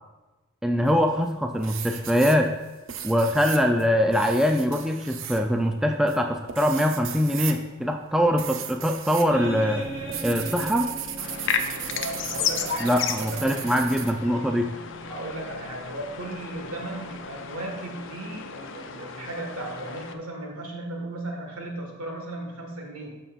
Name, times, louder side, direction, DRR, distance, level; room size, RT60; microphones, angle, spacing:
voice 1, 0.6-2.5 3.0-9.9 10.2-10.9 12.8-14.7, equal, ahead, 3 dB, 0.3 m, -23 dB
sound 1, 0.9-1.3 1.6-9.3 9.6-14.1, right 9 dB, 60° right, 0.5 m, -37 dB
sound 2, 9.3-18.2, right 1 dB, 30° right, 1.5 m, -41 dB
sound 3, 11.2-20.1, left 7 dB, 55° left, 0.5 m, -34 dB
voice 2, 11.9-13.7 15.0-23.1, right 2 dB, 80° right, 1 dB, 1.6 m, -36 dB
12.5 x 5.7 x 2.4 m, 1.2 s
head